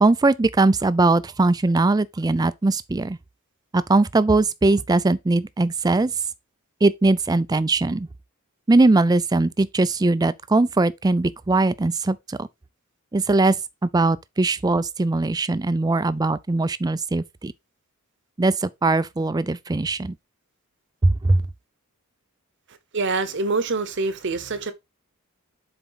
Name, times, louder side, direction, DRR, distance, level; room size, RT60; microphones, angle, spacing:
voice 1, 0.0-3.2 3.7-6.1 6.8-8.1 8.7-12.5 13.1-13.6 13.8-17.5 18.4-20.1 21.0-21.4, right 2 dB, 15° right, 0.4 m, -20 dB
voice 2, 22.9-24.7, right 3 dB, 55° right, 0.9 m, -25 dB
7.0 x 4.4 x 4.0 m
head